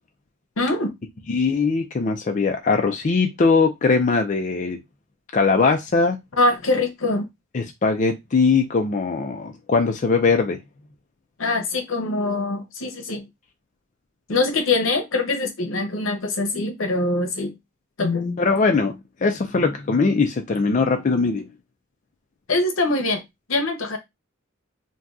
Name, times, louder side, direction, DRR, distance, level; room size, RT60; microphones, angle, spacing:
voice 1, 0.6-0.9 6.4-7.3 11.4-13.3 14.3-17.5 18.0-18.4 22.5-23.2 23.5-24.0, left 2 dB, 80° left, 0.9 m, -23 dB
voice 2, 1.3-4.8 5.3-6.2 7.5-10.6 18.4-18.9 19.2-21.5, left 4 dB, 40° left, 0.4 m, -20 dB
2.7 x 2.3 x 3.5 m
head